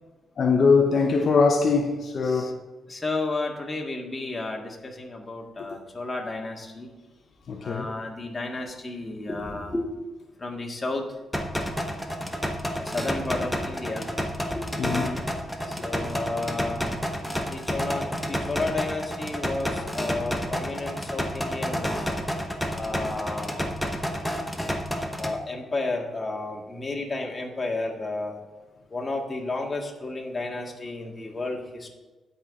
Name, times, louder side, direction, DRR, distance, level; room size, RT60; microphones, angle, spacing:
voice 1, 0.4-2.5 7.5-7.9 14.8-15.2, left 4 dB, 55° left, 2 dB, 0.9 m, -22 dB
voice 2, 2.9-6.9 7.6-9.8 10.4-11.0 12.8-14.1 14.5-14.6 15.7-16.9 17.5-22.1 22.7-23.7 25.2-28.4 28.9-31.9, left 2 dB, 25° left, 0 dB, 1.8 m, -32 dB
sound 1, 11.3-25.3, equal, 5° left, 1.0 m, -30 dB
16.5 x 5.6 x 3.7 m, 1.2 s
cardioid pair, 105°, 0 cm